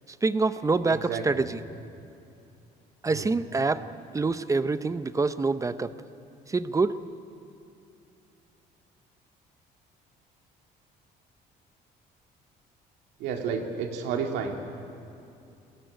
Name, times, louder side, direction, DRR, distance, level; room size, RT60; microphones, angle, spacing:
voice 1, 0.2-1.6 3.0-3.8 4.1-5.9 6.5-7.0, right 3 dB, 20° right, 13 dB, 0.7 m, -26 dB
voice 2, 0.9-1.5 3.1-3.3 13.2-14.7, right 6 dB, 90° right, 2 dB, 2.4 m, -31 dB
21.5 x 17.5 x 9.3 m, 2.6 s
cardioid pair, 110°, 17 cm